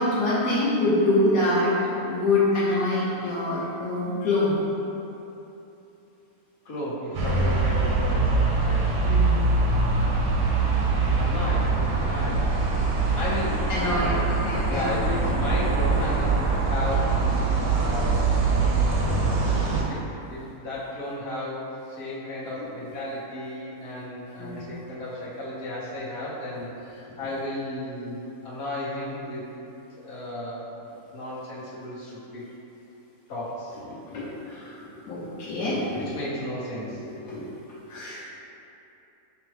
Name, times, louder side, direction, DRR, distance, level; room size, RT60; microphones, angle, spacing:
voice 1, 0.0-1.7 2.0-4.6 9.0-9.5 13.7-14.9 24.4-24.6 34.1-34.7 35.1-36.0 37.2-37.5 37.9-38.2, left 2 dB, 70° left, -8 dB, 1.2 m, -25 dB
voice 2, 6.6-8.9 11.1-12.6 13.1-14.3 14.7-18.4 19.7-29.4 30.0-30.7 31.1-32.4 33.3-33.8 36.0-37.1, left 1 dB, 50° left, -9 dB, 1.0 m, -34 dB
sound 1, 7.1-19.8, right 3 dB, 65° right, 0.7 m, -23 dB
5.3 x 2.0 x 3.1 m, 2.9 s
omnidirectional pair, 1.6 m